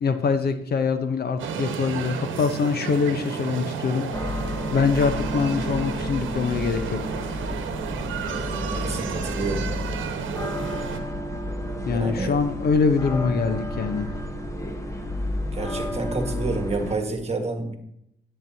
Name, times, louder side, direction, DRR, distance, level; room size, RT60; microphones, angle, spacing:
voice 1, 0.0-7.3 11.9-14.1, left 5 dB, 50° left, 9 dB, 0.8 m, -24 dB
sound 1, 1.4-11.0, right 6 dB, 75° right, 1.1 m, -32 dB
sound 2, 4.1-16.9, left 1 dB, 15° left, 1.1 m, -31 dB
voice 2, 8.6-9.6 11.9-12.3 15.5-17.8, right 3 dB, 30° right, 4 dB, 1.5 m, -29 dB
10.5 x 9.1 x 2.8 m, 0.77 s
cardioid pair, 90°, 20 cm